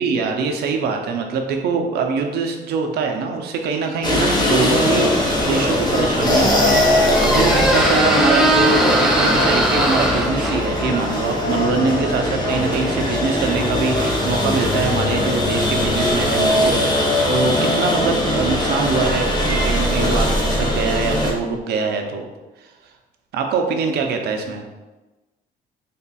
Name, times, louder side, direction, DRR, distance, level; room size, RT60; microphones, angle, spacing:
voice 1, 0.0-22.3 23.3-24.6, right 4 dB, 80° right, 4 dB, 0.6 m, -23 dB
sound 1, 4.0-21.3, left 1 dB, 25° left, 0.7 m, -20 dB
Squeak, 5.9-14.7, right 1 dB, ahead, 0.5 m, -22 dB
sound 2, 12.7-21.6, left 1 dB, 75° left, 1.3 m, -34 dB
3.4 x 2.3 x 4.0 m, 1.1 s
cardioid pair, 140°, 16 cm